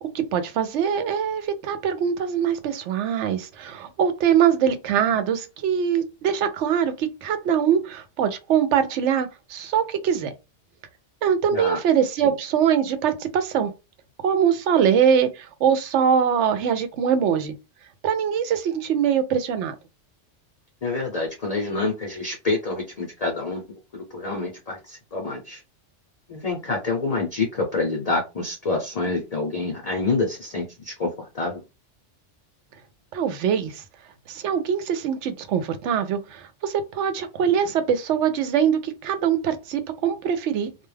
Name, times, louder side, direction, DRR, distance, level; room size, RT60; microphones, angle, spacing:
voice 1, 0.0-10.3 11.2-13.7 14.2-17.5 18.0-19.8 33.1-33.8 34.3-40.7, right 8 dB, 75° right, 0.9 m, -23 dB
voice 2, 11.5-11.8 12.2-12.3 20.8-25.6 26.3-31.6, left 3 dB, 40° left, 0.6 m, -27 dB
2.3 x 2.2 x 3.2 m
omnidirectional pair, 1.2 m